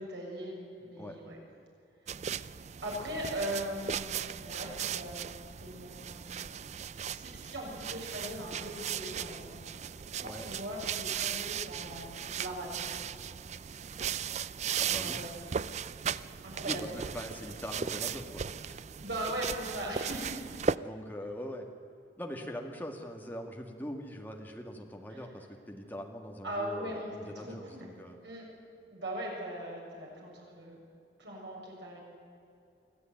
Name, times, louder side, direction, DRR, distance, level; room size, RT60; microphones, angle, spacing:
voice 1, 0.0-1.4 2.8-6.5 7.0-9.6 10.2-13.1 14.8-15.3 16.4-16.8 19.0-20.4 25.1-25.2 26.4-27.9 28.2-28.4 28.9-30.8 31.2-32.0, right 1 dB, 80° right, -2 dB, 7.2 m, -40 dB
sound 1, 2.1-20.8, right 7 dB, 40° right, 0.4 m, -37 dB
voice 2, 10.2-10.5 14.8-15.2 16.7-18.8 20.8-21.7 22.2-28.2, equal, 10° left, 2 dB, 2.1 m, -42 dB
24.0 x 15.0 x 9.4 m, 2.6 s
head